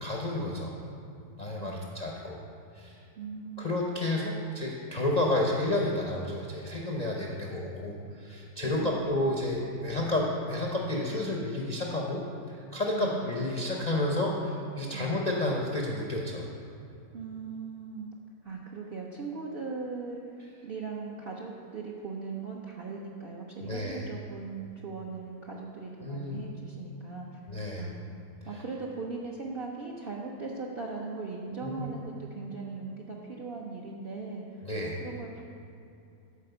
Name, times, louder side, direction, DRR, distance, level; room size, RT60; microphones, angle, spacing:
voice 1, 0.0-0.7 1.4-2.4 2.7-3.0 3.6-12.2 12.5-16.5 23.6-24.0 26.0-26.4 27.5-27.8 31.6-31.9 34.6-35.0, left 1 dB, 50° left, -2 dB, 0.4 m, -31 dB
voice 2, 1.6-2.3 3.2-3.7 8.6-9.1 12.9-13.3 14.9-15.4 17.1-18.1 18.4-27.5 27.8-28.1 28.5-35.4, right 4 dB, 60° right, -2 dB, 0.6 m, -39 dB
8.4 x 4.3 x 6.7 m, 2.6 s
omnidirectional pair, 1.7 m